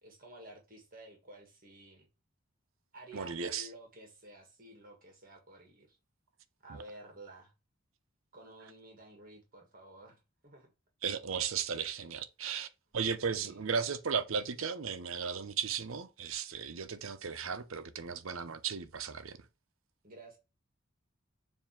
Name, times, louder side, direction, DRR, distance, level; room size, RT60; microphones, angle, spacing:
voice 1, 0.0-2.1 2.9-6.0 6.6-7.5 8.3-10.7 13.3-13.6 20.0-20.4, right 1 dB, 45° right, 1.6 m, -52 dB
voice 2, 3.1-3.7 11.0-12.7 12.9-19.4, right 6 dB, 90° right, 0.8 m, -35 dB
7.3 x 2.8 x 5.8 m
head